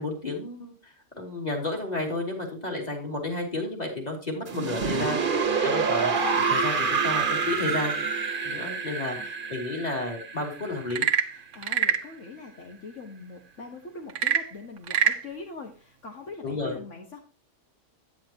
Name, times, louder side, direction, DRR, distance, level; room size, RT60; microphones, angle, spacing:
voice 1, 0.0-8.0 8.4-11.1 16.4-16.8, left 2 dB, 30° left, 1 dB, 3.0 m, -32 dB
sound 1, 4.5-11.4, right 5 dB, 45° right, 1.2 m, -27 dB
Frog / Percussion / Wood, 10.8-12.1 14.1-15.3, right 7 dB, 70° right, 1.1 m, -25 dB
voice 2, 11.3-17.2, left 3 dB, 70° left, 2 dB, 1.7 m, -42 dB
9.5 x 9.4 x 2.9 m, 0.35 s
omnidirectional pair, 1.3 m